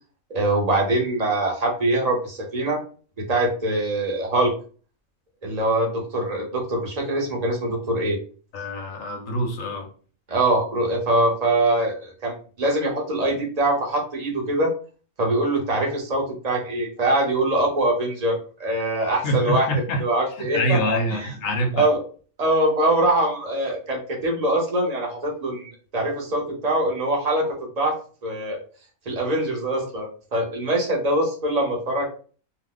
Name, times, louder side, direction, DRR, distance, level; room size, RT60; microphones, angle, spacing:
voice 1, 0.3-2.8 3.3-4.5 5.4-8.2 10.3-14.7 15.2-19.7 20.0-20.8 21.2-21.3 21.7-22.0 22.4-28.0 28.2-28.6 29.1-32.1, right 1 dB, 35° right, 0.8 m, -23 dB
voice 2, 8.5-9.9 19.2-20.0 20.4-21.9, equal, 70° left, 1.1 m, -25 dB
2.8 x 2.1 x 3.7 m
omnidirectional pair, 1.4 m